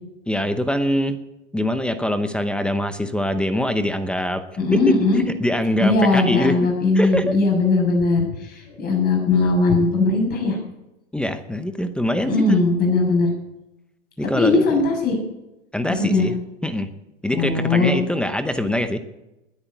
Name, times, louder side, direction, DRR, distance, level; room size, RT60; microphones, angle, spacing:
voice 1, 0.3-1.2 1.5-4.4 4.7-4.8 5.3-6.7 6.9-7.3 11.1-12.6 14.2-14.6 15.7-16.4 16.6-16.9 17.2-19.0, left 1 dB, 5° left, 10 dB, 0.8 m, -23 dB
voice 2, 4.6-5.2 5.8-10.6 12.2-13.3 14.4-15.2 15.9-16.3 17.3-17.9, left 3 dB, 25° left, 0 dB, 6.9 m, -19 dB
19.5 x 8.8 x 8.3 m, 0.95 s
hypercardioid pair, 135°, 37 cm